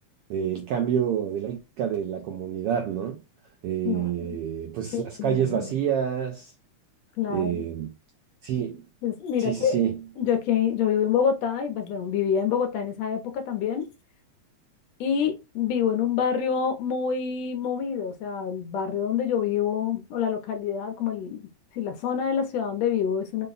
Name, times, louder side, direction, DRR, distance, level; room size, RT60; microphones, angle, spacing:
voice 1, 0.3-3.2 3.6-6.5 7.3-7.9 8.4-8.8 9.4-10.0, right 9 dB, 80° right, 1.3 m, -28 dB
voice 2, 3.9-4.4 4.9-5.7 7.2-7.7 9.0-9.8 10.2-13.9 15.0-21.5 21.7-23.5, left 8 dB, 75° left, 1.7 m, -27 dB
5.2 x 2.2 x 3.9 m
omnidirectional pair, 3.4 m